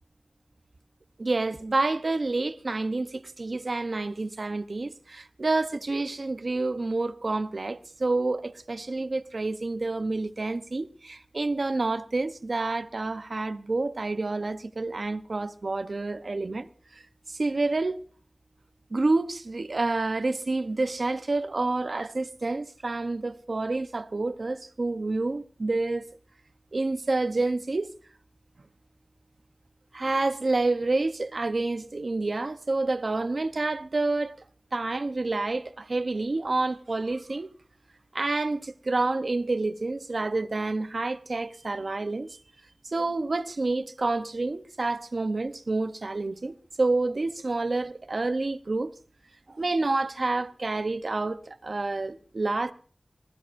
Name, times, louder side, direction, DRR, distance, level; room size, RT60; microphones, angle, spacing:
voice 1, 1.2-16.7 16.9-17.0 17.3-18.0 18.9-26.1 26.7-27.9 29.9-34.4 34.7-37.5 38.1-42.4 42.8-48.9 49.5-52.7, right 3 dB, 70° right, 0.8 m, -28 dB
24.5 x 20.0 x 2.6 m
wide cardioid pair, 65°, 0 cm